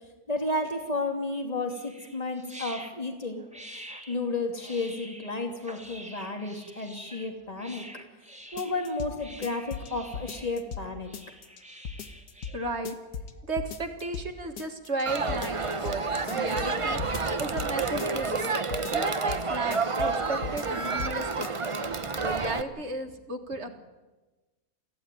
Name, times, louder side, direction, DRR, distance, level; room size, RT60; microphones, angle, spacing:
voice 1, 0.3-3.4 4.1-7.8 8.5-11.1, left 2 dB, 25° left, 4 dB, 2.8 m, -32 dB
sound 1, 1.7-12.7, right 1 dB, 5° right, 2.1 m, -47 dB
sound 2, 8.6-9.1 9.4-10.9 11.1-11.6 11.9-12.6 12.9-13.3 13.6-14.3 14.6-15.0 15.3-16.0 16.3-17.7 18.0-18.5 18.7-19.4 19.7-20.2 20.4-21.1 21.4-21.5, left 6 dB, 80° left, 1.9 m, -37 dB
voice 2, 12.5-13.0 13.5-16.0 16.3-18.5 18.9-21.5 22.1-23.7, right 2 dB, 45° right, 6 dB, 2.1 m, -34 dB
Crowd, 15.1-22.6, right 4 dB, 25° right, 0.7 m, -29 dB
24.5 x 15.5 x 9.2 m, 1.2 s
omnidirectional pair, 1.7 m